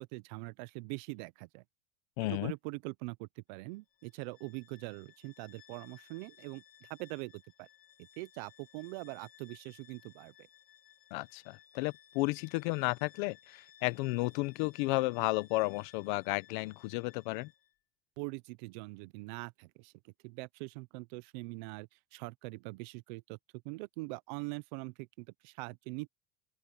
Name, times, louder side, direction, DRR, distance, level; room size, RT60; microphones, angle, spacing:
voice 1, 0.0-1.6 2.3-7.7 8.2-10.3 18.2-23.4 23.6-26.1, right 26 dB, 50° right, 0.5 m, -43 dB
voice 2, 2.2-2.5 11.1-17.5, left 23 dB, 55° left, 0.9 m, -33 dB
Bowed string instrument, 3.9-17.7, left 10 dB, 30° left, 1.7 m, -61 dB
open air
cardioid pair, 180°, 29 cm